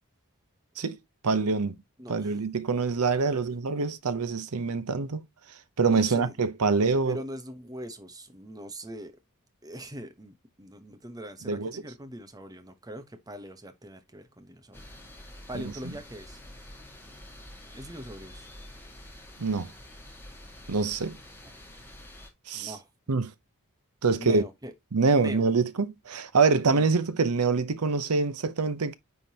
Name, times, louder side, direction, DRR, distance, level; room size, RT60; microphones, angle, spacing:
voice 1, 1.2-1.8 2.1-5.2 5.8-7.2 11.5-11.8 15.5-15.6 19.4-19.7 20.7-21.2 22.5-22.7 23.1-23.3 24.0-24.4 24.9-29.0, right 4 dB, 85° right, 0.7 m, -25 dB
voice 2, 2.0-2.4 3.3-3.4 5.8-6.4 7.0-9.1 9.6-14.9 15.5-16.4 17.7-18.5 22.5-22.9 24.1-24.7 25.1-25.5 26.6-26.9, right 1 dB, 15° right, 1.0 m, -41 dB
sound 1, 14.7-22.3, left 1 dB, 10° left, 1.7 m, -47 dB
9.4 x 3.7 x 2.8 m
head